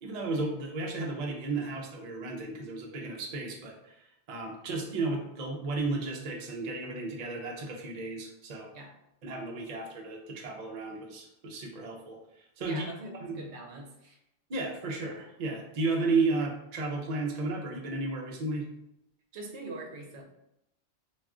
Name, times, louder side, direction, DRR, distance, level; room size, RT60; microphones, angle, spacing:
voice 1, 0.0-8.7 9.2-12.8 13.2-13.4 14.5-18.7, right 3 dB, 50° right, 0 dB, 0.5 m, -33 dB
voice 2, 12.6-14.2 19.3-20.2, right 2 dB, 75° right, 2 dB, 0.8 m, -43 dB
2.4 x 2.4 x 3.4 m, 0.82 s
omnidirectional pair, 1.2 m